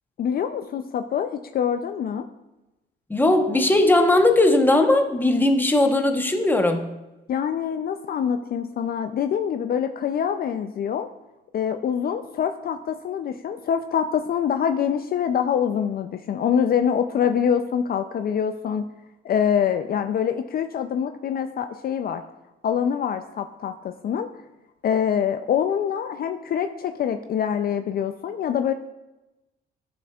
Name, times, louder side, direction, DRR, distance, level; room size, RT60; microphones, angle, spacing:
voice 1, 0.2-2.3 7.3-11.1 11.5-18.9 19.2-22.2 22.6-24.3 24.8-28.7, left 8 dB, 50° left, 8 dB, 0.4 m, -25 dB
voice 2, 3.1-6.9, left 2 dB, 10° left, 5 dB, 0.9 m, -18 dB
11.0 x 6.3 x 2.3 m, 1.0 s
cardioid pair, 90°, 20 cm